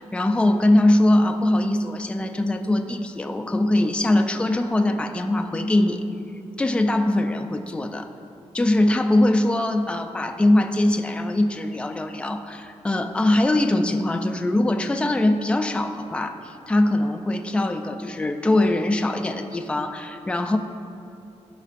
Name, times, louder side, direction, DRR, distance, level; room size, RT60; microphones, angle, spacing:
voice 1, 0.0-6.0 6.6-8.1 8.5-20.6, left 1 dB, 10° left, 5 dB, 0.3 m, -22 dB
14.0 x 5.4 x 2.5 m, 2.7 s
wide cardioid pair, 160°, 11 cm